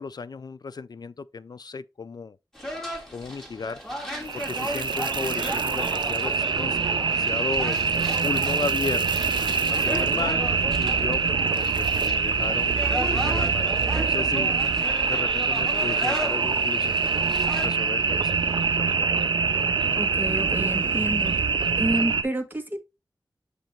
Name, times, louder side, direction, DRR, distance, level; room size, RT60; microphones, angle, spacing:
voice 1, 0.0-2.4 3.1-3.8 4.3-7.8 8.2-9.3 9.7-10.5 10.8-12.8 13.1-14.5 15.1-17.3 17.6-19.0, left 4 dB, 60° left, 0.3 m, -35 dB
sound 1, 2.6-17.7, equal, 5° left, 2.3 m, -35 dB
sound 2, 4.2-22.2, right 5 dB, 90° right, 0.5 m, -24 dB
voice 2, 19.9-21.4 21.8-22.8, right 1 dB, 25° right, 1.3 m, -29 dB
7.7 x 2.8 x 4.4 m
wide cardioid pair, 55°, 8 cm